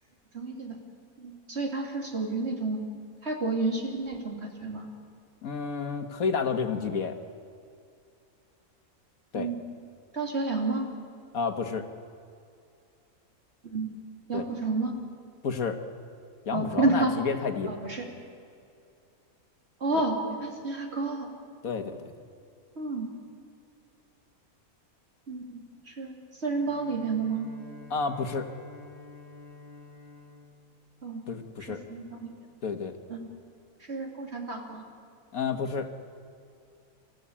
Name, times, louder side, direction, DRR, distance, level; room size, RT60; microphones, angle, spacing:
voice 1, 0.3-0.8 1.2-2.8 3.2-4.8 9.3-9.6 10.1-10.9 13.6-13.9 14.3-14.9 16.5-17.2 17.7-18.0 19.8-21.3 22.8-23.1 25.3-25.6 25.9-27.5 31.0-31.2 31.7-32.3 33.1-33.3 33.8-34.8, right 3 dB, 45° right, 2 dB, 3.0 m, -30 dB
voice 2, 5.4-7.2 9.3-9.5 11.3-11.9 14.3-14.5 15.4-15.8 16.5-17.8 21.6-22.1 27.9-28.5 31.3-31.8 32.6-33.0 35.3-35.9, left 5 dB, 70° left, 7 dB, 1.8 m, -30 dB
Bowed string instrument, 26.4-31.6, left 4 dB, 15° right, 3.1 m, -50 dB
27.5 x 14.5 x 8.6 m, 2.4 s
omnidirectional pair, 1.5 m